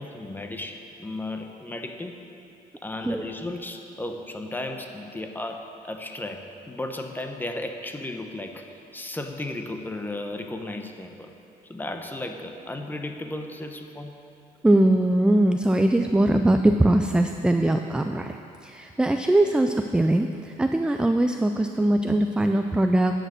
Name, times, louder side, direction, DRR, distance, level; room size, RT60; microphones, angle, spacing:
voice 1, 0.0-2.2 2.8-11.3 11.7-14.2 19.4-19.5, left 2 dB, 10° left, 5 dB, 0.8 m, -35 dB
voice 2, 14.6-18.4 18.6-23.2, right 1 dB, 5° right, 6 dB, 0.3 m, -21 dB
9.8 x 6.6 x 6.5 m, 2.7 s
cardioid pair, 110°, 17 cm